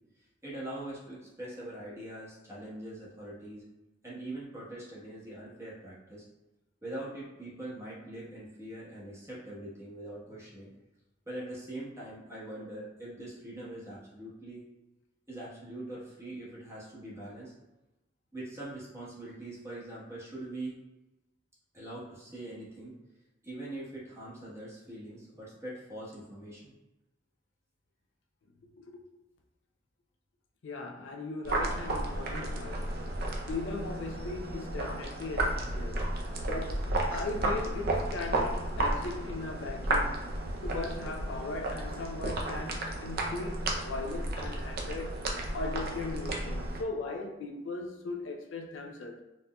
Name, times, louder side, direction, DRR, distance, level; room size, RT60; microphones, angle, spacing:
voice 1, 0.4-3.6 4.0-6.2 6.8-10.7 11.2-14.7 15.3-17.5 18.3-20.8 21.7-22.9 23.4-26.7, right 1 dB, 15° right, 1.1 m, -42 dB
voice 2, 30.6-33.0 33.5-36.1 36.5-40.2 40.6-49.2, left 3 dB, 70° left, 0.4 m, -38 dB
sound 1, 31.4-46.8, right 1 dB, 55° right, 0.5 m, -33 dB
4.0 x 2.6 x 2.2 m
head